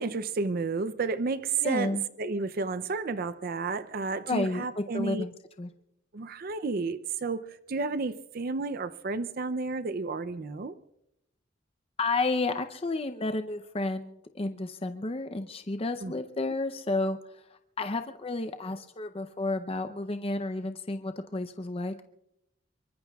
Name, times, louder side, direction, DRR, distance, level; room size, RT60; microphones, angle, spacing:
voice 1, 0.0-5.2 6.1-10.7 16.0-16.1, right 4 dB, 50° right, 0.5 m, -31 dB
voice 2, 1.6-2.0 4.3-5.7 12.0-22.0, left 2 dB, 30° left, 0.6 m, -31 dB
25.5 x 23.5 x 2.3 m
head